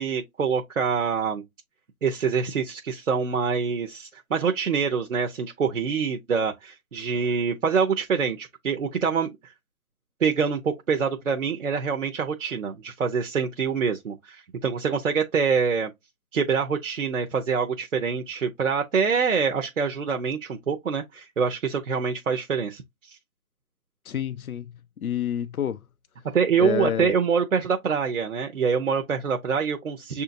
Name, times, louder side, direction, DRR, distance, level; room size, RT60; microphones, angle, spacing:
voice 1, 0.0-1.4 2.0-9.5 10.2-15.9 16.3-23.2 26.3-30.2, right 6 dB, 60° right, 0.7 m, -25 dB
voice 2, 24.1-24.7 25.0-25.8 26.6-27.1, left 9 dB, 80° left, 0.6 m, -28 dB
6.7 x 2.8 x 2.5 m
figure-of-eight pair, 165°, 43 cm